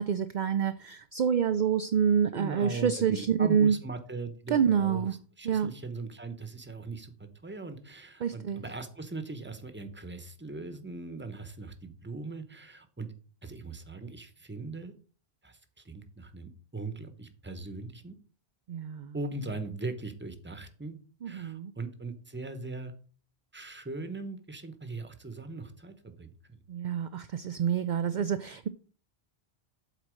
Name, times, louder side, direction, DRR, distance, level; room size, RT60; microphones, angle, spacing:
voice 1, 0.0-3.8 4.5-5.1 5.4-5.7 8.2-8.6 18.7-19.1 21.2-21.7 26.7-28.7, right 7 dB, 55° right, 0.6 m, -27 dB
voice 2, 2.3-5.1 5.4-13.1 13.4-14.9 15.4-18.2 19.1-21.0 21.3-22.9 23.5-26.6, right 3 dB, 10° right, 0.9 m, -40 dB
8.0 x 4.2 x 6.3 m
omnidirectional pair, 1.1 m